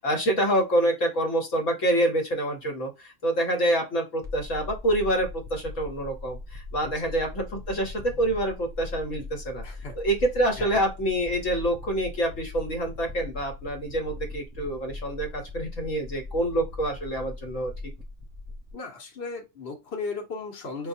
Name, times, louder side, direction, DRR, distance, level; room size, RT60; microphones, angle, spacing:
voice 1, 0.0-9.6 10.0-17.7, right 1 dB, 70° left, 2 dB, 1.4 m, -26 dB
sound 1, 4.2-18.7, left 2 dB, 5° right, 0.6 m, -40 dB
voice 2, 6.8-7.2 9.6-10.0 10.6-10.8 18.7-20.9, left 4 dB, 55° left, 0 dB, 1.2 m, -36 dB
5.2 x 2.3 x 2.6 m, 0.24 s
omnidirectional pair, 1.4 m